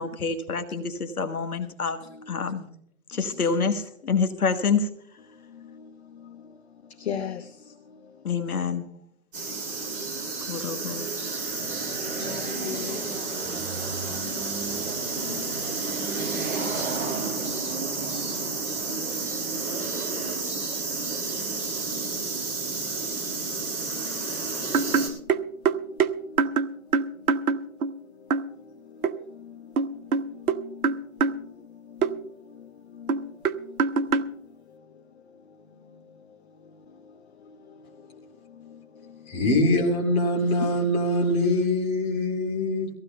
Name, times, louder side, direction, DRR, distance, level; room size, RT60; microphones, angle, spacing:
voice 1, 0.0-2.0 2.3-2.6 3.1-4.9 8.2-8.8 10.5-11.1, left 5 dB, 75° left, 1.4 m, -27 dB
voice 2, 5.5-5.9 6.1-6.4 7.0-7.7 9.5-10.6 10.9-11.3 11.7-13.2 13.4-16.0 23.9-24.3 24.5-25.5 25.8-26.5 27.6-27.7 28.6-33.3 33.6-33.8 37.7-37.8 38.6-38.8 40.6-40.7, left 8 dB, 45° left, 1.0 m, -42 dB
sound 1, 9.3-25.1, right 4 dB, 30° right, 5.5 m, -30 dB
sound 2, 24.7-28.0 28.3-28.5 29.0-29.2 29.8-31.4 32.0-32.1 33.1-34.3, right 5 dB, 70° right, 0.8 m, -24 dB
voice 3, 39.3-42.9, left 1 dB, 15° left, 2.3 m, -23 dB
24.0 x 15.5 x 2.2 m
figure-of-eight pair, 140°, 44 cm